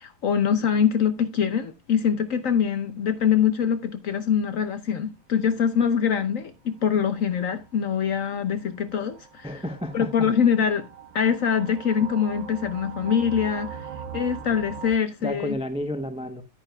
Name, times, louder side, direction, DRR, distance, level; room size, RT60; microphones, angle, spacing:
voice 1, 0.0-9.6 9.9-10.9 11.1-13.9 14.1-15.5, left 7 dB, 60° left, 0.9 m, -24 dB
sound 1, 6.5-14.9, right 7 dB, 80° right, 1.7 m, -41 dB
voice 2, 9.4-10.3 15.2-16.4, left 1 dB, 10° right, 0.4 m, -31 dB
9.8 x 9.3 x 2.3 m
omnidirectional pair, 2.0 m